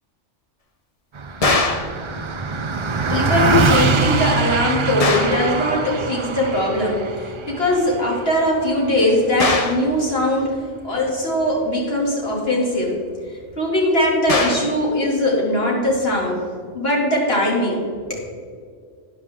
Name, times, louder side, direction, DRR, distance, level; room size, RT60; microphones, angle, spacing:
Car passing by, 1.1-10.8, right 4 dB, 40° right, 0.4 m, -24 dB
sound 1, 1.4-2.0 5.0-5.5 9.4-9.9 14.3-14.8, left 3 dB, 35° left, 0.8 m, -21 dB
voice 1, 3.1-13.0 13.3-16.4 16.7-17.8 18.1-18.3, left 1 dB, 55° left, -3 dB, 2.9 m, -20 dB
12.5 x 9.4 x 3.7 m, 2.1 s
omnidirectional pair, 1.2 m